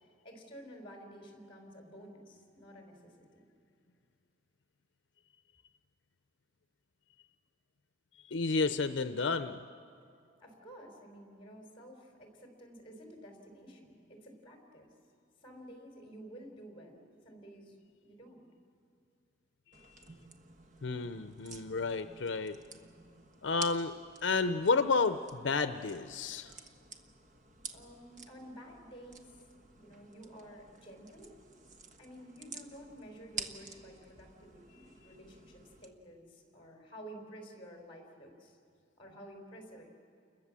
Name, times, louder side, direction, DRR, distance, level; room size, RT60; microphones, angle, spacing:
voice 1, 0.2-3.5 10.4-14.9 15.4-17.7 18.0-18.5 27.7-29.4 29.7-31.3 32.0-38.6 39.0-39.9, equal, 30° left, 2 dB, 4.6 m, -52 dB
voice 2, 8.2-9.6 19.7-20.2 20.8-22.6 23.4-23.9 24.2-26.5, left 4 dB, 75° left, 10 dB, 0.6 m, -31 dB
sound 1, 19.7-35.9, right 4 dB, 45° right, 1.3 m, -50 dB
29.5 x 21.5 x 7.5 m, 2.4 s
head